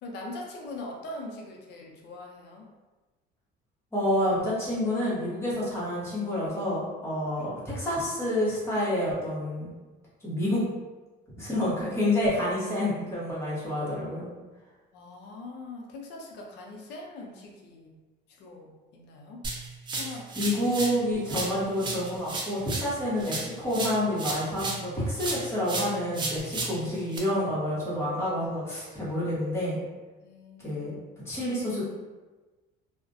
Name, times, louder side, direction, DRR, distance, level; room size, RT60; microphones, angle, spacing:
voice 1, 0.0-2.7 7.4-7.5 14.9-18.0 18.4-19.4 19.9-20.3 30.2-30.8, left 2 dB, 60° left, 0 dB, 0.5 m, -42 dB
voice 2, 3.9-9.7 10.2-10.6 11.3-14.3 20.0-29.8 30.6-31.0 31.2-31.8, left 1 dB, 15° left, -9 dB, 1.0 m, -28 dB
sound 1, 19.4-21.0 21.3-24.9 25.2-27.2, right 3 dB, 25° right, 0.4 m, -34 dB
2.4 x 2.1 x 2.6 m, 1.2 s
cardioid pair, 135°, 20 cm